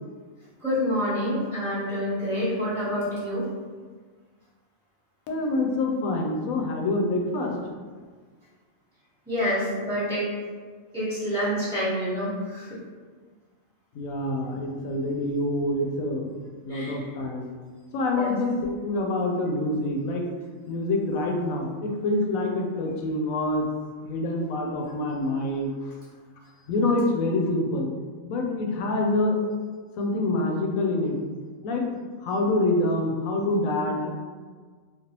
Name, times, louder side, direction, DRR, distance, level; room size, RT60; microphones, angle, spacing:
voice 1, 0.6-3.5 9.3-10.3 10.9-12.8 16.7-17.1 18.1-18.3, equal, 5° right, -13 dB, 1.0 m, -27 dB
voice 2, 5.3-7.6 13.9-16.3 16.6-17.5 17.9-18.5 18.8-20.3 20.7-23.7 24.0-25.9 26.7-27.9 28.2-29.4 30.0-31.2 31.6-31.9 32.2-34.1, left 2 dB, 85° left, 1 dB, 1.0 m, -26 dB
3.3 x 2.3 x 2.8 m, 1.5 s
omnidirectional pair, 1.4 m